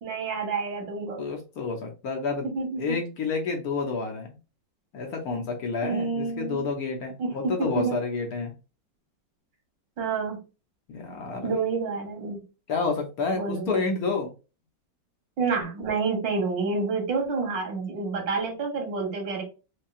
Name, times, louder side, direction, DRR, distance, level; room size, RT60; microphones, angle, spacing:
voice 1, 0.0-1.2 2.5-3.0 5.8-6.6 7.2-8.0 10.0-10.4 11.4-12.4 13.4-13.8 15.4-19.4, right 4 dB, 90° right, 1 dB, 2.1 m, -28 dB
voice 2, 1.2-2.5 2.8-4.4 4.9-8.5 10.9-11.5 12.7-14.3, left 4 dB, 60° left, 3 dB, 1.1 m, -29 dB
5.3 x 2.3 x 2.4 m, 0.31 s
omnidirectional pair, 2.0 m